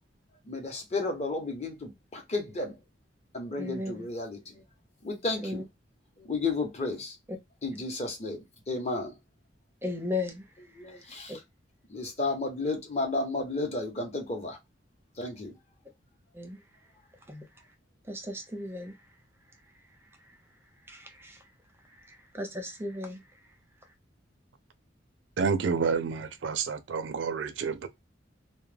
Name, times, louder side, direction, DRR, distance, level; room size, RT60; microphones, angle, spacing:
voice 1, 0.4-2.8 3.3-4.6 5.0-5.6 6.2-7.2 7.6-9.1 10.8-11.4 11.9-14.6 15.2-15.5, left 3 dB, 35° left, 0.7 m, -33 dB
voice 2, 3.6-4.1 5.4-5.6 7.3-7.4 7.7-7.8 9.8-10.4 11.3-11.4 16.3-16.6 17.3-17.4 18.1-19.0 20.9-21.4 22.1-23.2, left 2 dB, 10° right, 0.5 m, -35 dB
voice 3, 25.4-27.9, right 5 dB, 70° right, 0.4 m, -29 dB
2.2 x 2.1 x 3.2 m
head